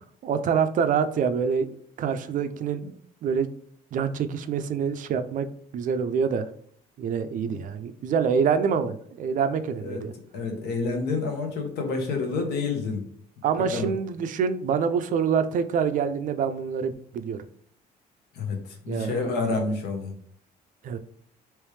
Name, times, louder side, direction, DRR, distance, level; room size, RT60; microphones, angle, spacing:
voice 1, 0.2-1.7 2.0-2.8 3.2-3.5 3.9-5.5 5.7-6.5 7.0-10.1 13.4-17.4 18.9-19.1 20.8-21.0, right 6 dB, 50° right, 10 dB, 0.4 m, -26 dB
voice 2, 10.3-13.0 13.7-13.9 18.3-18.6 18.8-20.1, left 3 dB, 75° left, 3 dB, 1.0 m, -28 dB
3.2 x 3.0 x 3.1 m, 0.62 s
cardioid pair, 110°, 17 cm